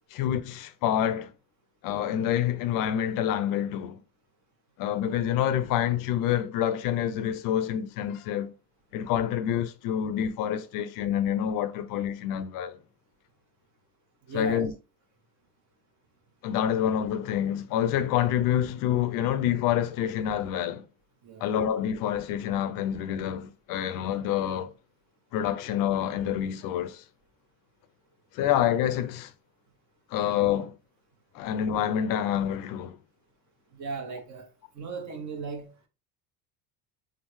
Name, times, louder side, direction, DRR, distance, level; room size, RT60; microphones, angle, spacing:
voice 1, 0.1-1.3 1.8-4.0 4.8-8.5 8.9-12.8 14.3-14.7 16.4-20.9 21.4-24.7 25.3-27.0 28.3-29.3 30.1-30.7 31.3-33.0, left 10 dB, 60° left, 0.6 m, -27 dB
voice 2, 14.2-14.7 21.2-21.5 33.7-34.5 34.7-35.7, right 5 dB, 50° right, 1.1 m, -37 dB
3.6 x 2.4 x 3.1 m
supercardioid pair, 95°, 37 cm